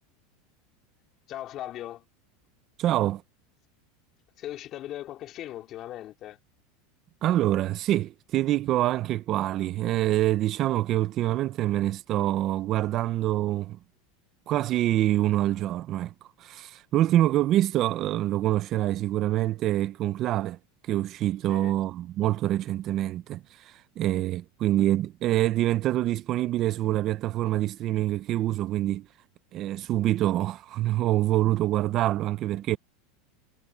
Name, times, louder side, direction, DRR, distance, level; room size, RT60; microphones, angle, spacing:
voice 1, 1.3-2.0 4.4-6.4 21.5-21.8, left 13 dB, 40° left, 2.8 m, -38 dB
voice 2, 2.8-3.2 7.2-13.8 14.5-16.1 16.4-20.6 20.9-29.0 29.5-32.8, right 14 dB, 40° right, 0.7 m, -26 dB
supercardioid pair, 135°, 0 cm